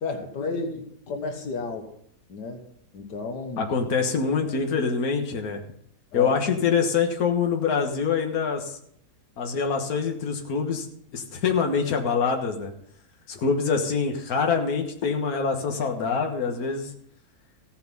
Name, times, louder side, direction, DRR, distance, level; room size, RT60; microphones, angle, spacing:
voice 1, 0.0-1.9 2.3-2.6 2.9-3.7 6.1-6.4, left 3 dB, 85° left, 5 dB, 1.9 m, -32 dB
voice 2, 3.6-5.6 6.1-8.8 9.4-10.9 11.1-12.7 13.3-16.9, left 5 dB, 65° left, 3 dB, 1.8 m, -25 dB
15.5 x 7.1 x 5.5 m, 0.70 s
omnidirectional pair, 1.7 m